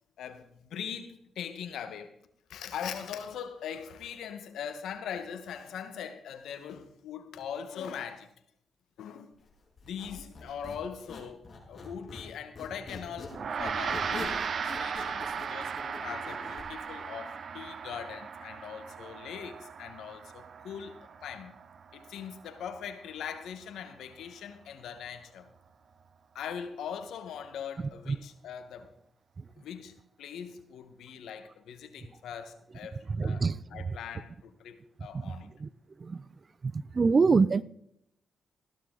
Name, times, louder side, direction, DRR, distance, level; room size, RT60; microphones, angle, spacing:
voice 1, 0.2-2.2 2.5-8.3 9.0-9.3 9.8-21.0 21.2-21.5 21.9-25.5 26.3-28.9 29.6-35.5, left 8 dB, 85° left, 1.4 m, -41 dB
Squeak, 9.8-12.3 12.6-16.7, left 3 dB, 50° left, 5.9 m, -43 dB
Gong, 13.3-22.8, right 6 dB, 60° right, 1.0 m, -37 dB
voice 2, 33.1-33.6 35.2-35.3 35.6-35.7 36.0-36.2 36.6-37.6, right 4 dB, 45° right, 0.6 m, -25 dB
15.0 x 12.0 x 3.9 m
supercardioid pair, 55°, 0 cm